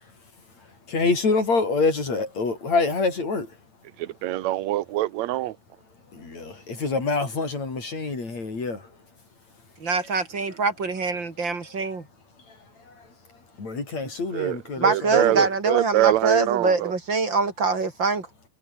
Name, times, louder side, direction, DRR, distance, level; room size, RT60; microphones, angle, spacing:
voice 1, 0.5-3.6 6.1-9.0 12.4-15.5, left 3 dB, 60° left, 8.0 m, -27 dB
voice 2, 4.0-5.6 14.3-16.9, right 15 dB, 70° right, 2.1 m, -24 dB
voice 3, 9.8-12.0 14.8-18.3, right 4 dB, 35° right, 3.4 m, -24 dB
omnidirectional pair, 3.6 m